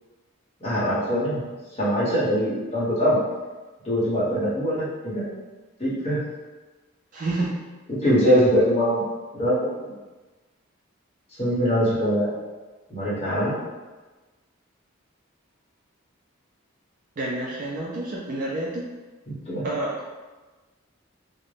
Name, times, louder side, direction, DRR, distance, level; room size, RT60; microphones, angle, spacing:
voice 1, 0.6-1.4 1.7-3.2 3.8-5.2 5.8-6.2 7.9-9.0 9.3-9.9 11.4-12.3 12.9-13.6 19.3-19.6, equal, 30° left, -9 dB, 0.9 m, -22 dB
voice 2, 7.1-7.6 17.2-18.8 19.6-19.9, right 2 dB, 40° right, -4 dB, 0.3 m, -28 dB
2.5 x 2.0 x 3.2 m, 1.2 s
head